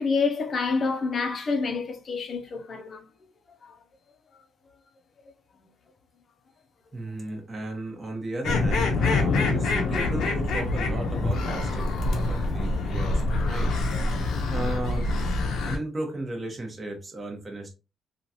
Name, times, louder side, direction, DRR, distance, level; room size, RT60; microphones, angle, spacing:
voice 1, 0.0-3.1, left 4 dB, 50° left, 0.6 m, -27 dB
voice 2, 6.9-13.7 14.5-15.0 15.6-17.7, right 1 dB, 30° right, 0.9 m, -35 dB
sound 1, 8.4-15.8, left 2 dB, 80° left, 0.7 m, -26 dB
sound 2, 9.1-14.1, left 1 dB, 15° left, 0.9 m, -37 dB
3.0 x 2.4 x 2.7 m
cardioid pair, 90°, 0 cm